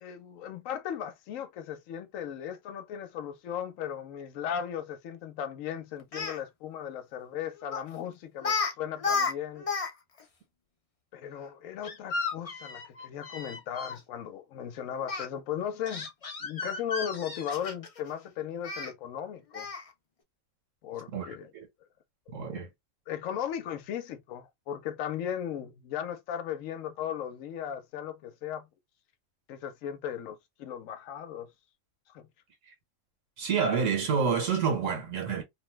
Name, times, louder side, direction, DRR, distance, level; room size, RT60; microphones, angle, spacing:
voice 1, 0.0-9.7 11.1-16.1 16.4-19.7 20.8-21.5 22.3-22.6 23.1-28.7 29.5-31.5 32.1-32.3, left 9 dB, 85° left, 1.0 m, -37 dB
Speech, 6.0-6.4 7.7-7.9 8.4-8.7 9.0-9.9 10.2-10.3 11.8-14.0 15.1-15.3 15.9-18.0 18.6-18.9 19.5-19.9, left 4 dB, 40° left, 0.5 m, -33 dB
voice 2, 21.1-21.7 22.3-22.7 33.4-35.4, right 6 dB, 80° right, 1.5 m, -28 dB
2.9 x 2.1 x 3.1 m
omnidirectional pair, 1.3 m